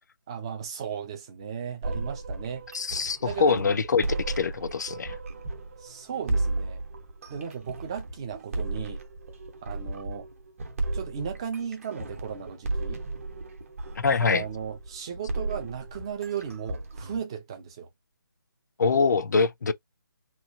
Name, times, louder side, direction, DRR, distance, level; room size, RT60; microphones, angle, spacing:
voice 1, 0.3-2.7 3.2-3.8 5.8-6.8 7.3-9.0 9.6-10.3 10.9-13.0 14.1-17.9, right 7 dB, 15° right, 0.4 m, -36 dB
sound 1, 1.8-17.2, right 2 dB, 40° right, 0.8 m, -34 dB
voice 2, 2.7-5.2 14.0-14.4 18.8-19.7, left 5 dB, 55° left, 0.4 m, -24 dB
3.0 x 2.3 x 2.4 m
hypercardioid pair, 165°, 11 cm